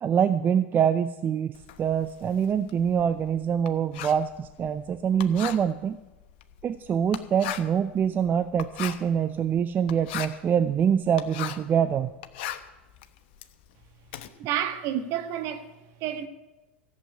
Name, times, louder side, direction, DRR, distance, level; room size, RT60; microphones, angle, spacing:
voice 1, 0.0-6.0 6.6-12.1, right 8 dB, 30° right, 0.6 m, -25 dB
Writing, 1.5-11.7 12.1-14.3, left 12 dB, 60° left, 1.1 m, -38 dB
voice 2, 14.4-16.3, right 10 dB, 55° right, 1.5 m, -30 dB
14.5 x 7.6 x 8.7 m
hypercardioid pair, 90°, 6 cm